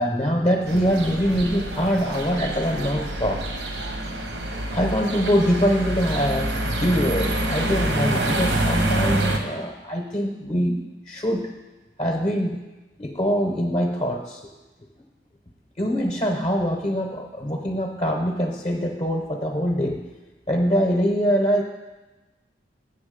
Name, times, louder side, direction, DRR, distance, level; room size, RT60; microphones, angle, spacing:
voice 1, 0.0-3.4 4.7-11.5 12.0-12.6 13.0-14.4 15.8-20.0 20.5-21.6, equal, 35° left, 1 dB, 0.7 m, -23 dB
sound 1, 0.7-9.4, right 1 dB, 80° right, 0.9 m, -26 dB
7.2 x 7.1 x 5.0 m, 1.1 s
head